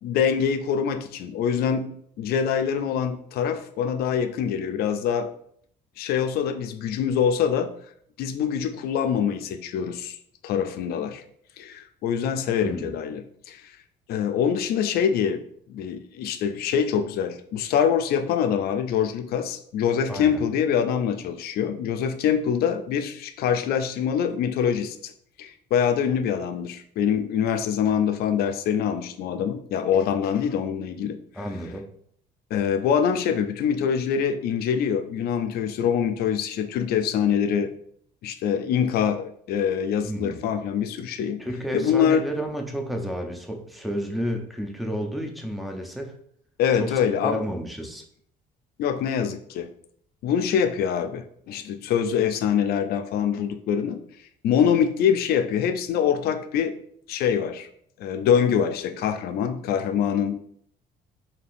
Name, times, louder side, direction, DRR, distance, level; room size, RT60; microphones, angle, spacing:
voice 1, 0.0-1.9 2.2-5.3 6.0-7.7 8.2-10.2 10.4-11.2 11.6-13.6 14.1-15.4 15.7-25.1 25.4-31.2 32.5-37.7 38.2-41.4 41.7-42.3 46.6-47.4 48.8-49.7 50.2-54.0 54.4-56.7 57.1-57.7 58.0-60.4, left 8 dB, 65° left, 8 dB, 0.4 m, -24 dB
voice 2, 20.1-20.4 31.3-31.8 40.1-40.4 41.4-46.1 46.8-46.9 47.2-48.0, equal, ahead, 3 dB, 0.4 m, -31 dB
3.3 x 2.7 x 2.4 m, 0.65 s
cardioid pair, 110°, 17 cm